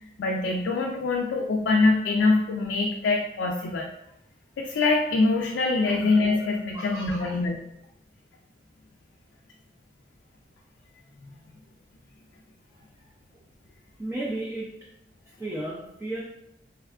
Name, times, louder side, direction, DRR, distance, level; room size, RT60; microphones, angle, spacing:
voice 1, 0.2-3.9 4.6-7.6, left 3 dB, 85° left, 0 dB, 0.3 m, -24 dB
voice 2, 5.8-6.4 6.7-7.4 14.0-14.7 15.4-16.2, right 1 dB, 15° right, -6 dB, 0.4 m, -34 dB
3.5 x 2.2 x 2.3 m, 0.81 s
head